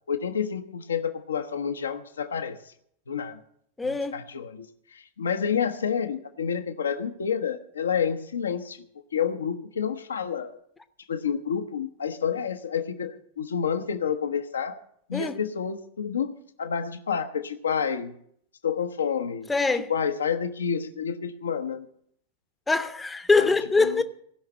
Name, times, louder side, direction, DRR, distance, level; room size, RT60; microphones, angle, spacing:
voice 1, 0.1-2.7 3.1-3.4 4.1-8.9 9.1-10.5 11.1-14.8 15.1-18.1 18.6-19.5 19.9-21.9 23.4-23.5 23.8-24.0, left 7 dB, 70° left, 0.9 m, -29 dB
voice 2, 3.8-4.2 15.1-15.4 19.5-19.9 22.7-24.0, left 3 dB, 10° left, 0.9 m, -23 dB
16.5 x 5.7 x 9.0 m
figure-of-eight pair, 90°, 0 cm